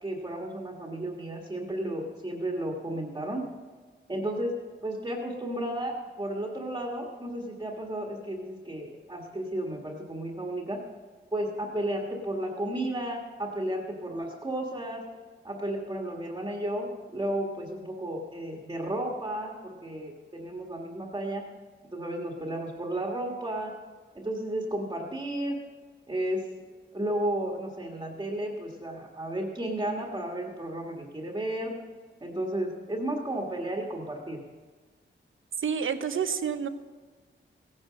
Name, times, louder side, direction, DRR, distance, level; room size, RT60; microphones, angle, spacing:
voice 1, 0.0-3.4 4.1-4.5 4.8-10.8 11.3-15.0 15.4-21.4 21.9-23.7 24.2-25.6 26.1-26.4 26.9-31.7 32.2-34.4, right 1 dB, 20° right, 0 dB, 1.7 m, -33 dB
voice 2, 35.6-36.7, right 7 dB, 85° right, 9 dB, 1.0 m, -29 dB
16.5 x 9.7 x 6.3 m, 1.4 s
wide cardioid pair, 155°, 20 cm